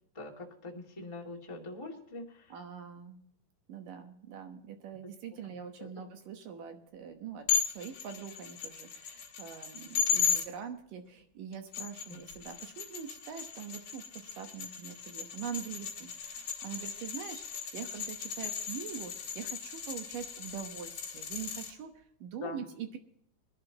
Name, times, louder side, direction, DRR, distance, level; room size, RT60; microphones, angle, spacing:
voice 1, 0.1-2.5 5.8-5.9 12.1-12.2 22.4-22.6, left 2 dB, 15° left, -2 dB, 1.2 m, -43 dB
voice 2, 2.5-3.2 3.7-7.5 7.7-23.0, right 8 dB, 65° right, 6 dB, 2.4 m, -43 dB
sound 1, 7.5-10.4 11.5-21.7, left 8 dB, 45° left, 2.4 m, -36 dB
23.0 x 11.5 x 2.9 m, 0.72 s
omnidirectional pair, 4.8 m